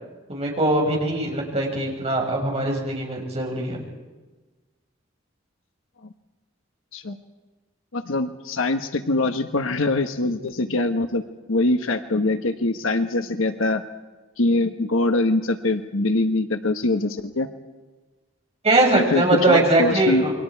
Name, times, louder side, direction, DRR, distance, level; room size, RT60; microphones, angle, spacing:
voice 1, 0.3-3.8 18.6-20.3, right 2 dB, 30° right, -1 dB, 5.8 m, -21 dB
voice 2, 7.9-11.2 11.5-13.8 14.4-17.5 18.9-20.2, left 2 dB, 85° left, 7 dB, 1.2 m, -23 dB
29.0 x 23.0 x 4.7 m, 1.3 s
head